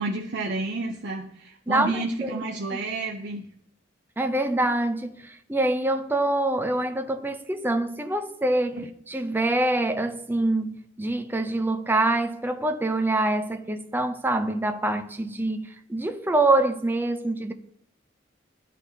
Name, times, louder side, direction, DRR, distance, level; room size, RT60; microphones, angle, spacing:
voice 1, 0.0-3.5 8.7-8.9, right 3 dB, 65° right, 0.7 m, -30 dB
voice 2, 1.7-2.3 4.2-17.5, right 2 dB, 10° right, 0.5 m, -25 dB
12.5 x 4.2 x 2.7 m
head